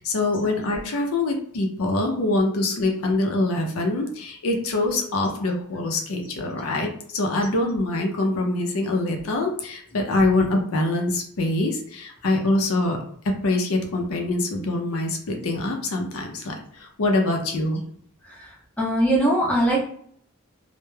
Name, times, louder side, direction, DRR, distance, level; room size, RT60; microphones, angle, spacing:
voice 1, 0.0-13.0 13.2-17.8, left 2 dB, 80° left, 2 dB, 0.5 m, -24 dB
voice 2, 18.8-19.9, right 1 dB, 5° left, -5 dB, 0.7 m, -21 dB
2.2 x 2.1 x 3.1 m, 0.62 s
head